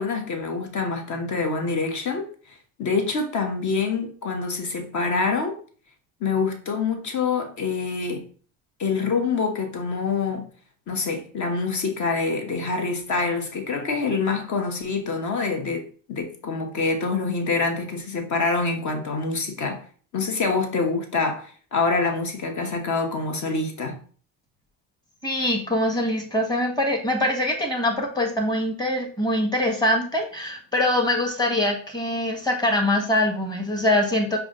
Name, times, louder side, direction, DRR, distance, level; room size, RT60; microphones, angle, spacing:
voice 1, 0.0-5.6 6.2-8.2 8.8-10.4 10.9-19.8 20.1-24.0, left 4 dB, 45° left, 1.2 m, -26 dB
voice 2, 25.2-34.4, left 1 dB, 10° left, 1.4 m, -23 dB
4.9 x 2.4 x 3.7 m
supercardioid pair, 85°, 40 cm